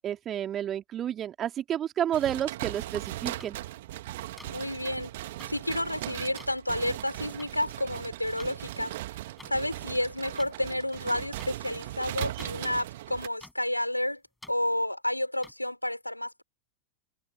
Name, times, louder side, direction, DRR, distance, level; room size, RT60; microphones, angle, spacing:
voice 1, 0.0-3.6, right 10 dB, 30° right, 3.2 m, -30 dB
sound 1, 2.1-13.3, right 16 dB, 55° right, 2.0 m, -38 dB
sound 2, 3.4-3.5 4.4-4.5 5.4-5.5 6.4-6.5 7.4-7.5 8.4-8.5 9.4-9.5 10.4-10.5 11.4-11.5 12.4-12.5 13.4-13.5 14.4-14.5 15.4-15.5, left 1 dB, 5° left, 7.2 m, -47 dB
voice 2, 4.5-5.1 5.4-9.0 9.5-14.2 14.5-16.4, left 1 dB, 85° left, 3.7 m, -30 dB
figure-of-eight pair, 90°, 0 cm